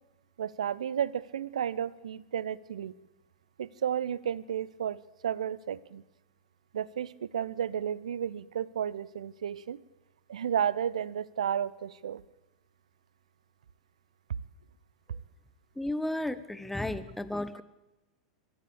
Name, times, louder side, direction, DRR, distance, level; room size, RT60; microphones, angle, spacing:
voice 1, 0.4-2.9 3.6-6.0 6.7-9.8 10.3-12.2, right 9 dB, 70° right, 21 dB, 0.7 m, -32 dB
voice 2, 15.8-17.6, left 1 dB, 5° left, 14 dB, 1.0 m, -33 dB
23.0 x 13.5 x 8.4 m, 1.0 s
figure-of-eight pair, 90°, 4 cm